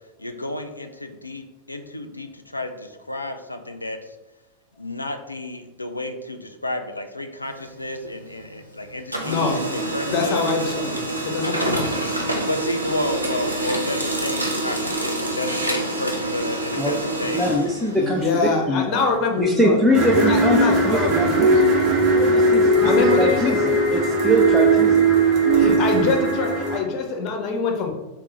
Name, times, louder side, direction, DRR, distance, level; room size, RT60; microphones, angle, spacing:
voice 1, 0.2-4.0 4.8-10.4 11.4-11.5 12.4-17.5, left 1 dB, 85° left, 7 dB, 0.3 m, -31 dB
Printer, 7.4-8.7 9.0-18.5, right 1 dB, 85° right, 0.5 m, -27 dB
voice 2, 9.2-9.6 10.0-12.2 16.1-16.2 17.9-21.6 22.8-23.6 25.6-27.9, left 4 dB, 40° left, 2 dB, 0.7 m, -25 dB
voice 3, 16.8-18.3 18.7-19.0 19.4-21.6 22.2-22.9 23.2-25.1 25.5-25.8, equal, 5° right, -2 dB, 0.4 m, -23 dB
sound 1, 19.9-26.8, right 2 dB, 35° right, 1.0 m, -18 dB
3.6 x 2.1 x 4.1 m, 1.0 s
figure-of-eight pair, 90°, 0 cm